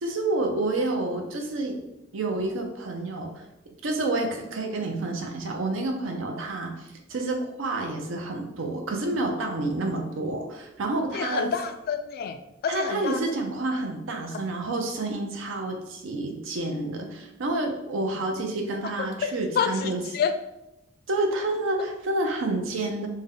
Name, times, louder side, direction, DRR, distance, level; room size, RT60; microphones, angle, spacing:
voice 1, 0.0-1.8 2.1-11.5 12.7-20.2 21.1-23.1, right 2 dB, 75° right, 3 dB, 0.6 m, -29 dB
voice 2, 11.1-13.2 19.0-20.3, left 7 dB, 50° left, 8 dB, 0.3 m, -29 dB
3.5 x 2.1 x 3.6 m, 0.89 s
head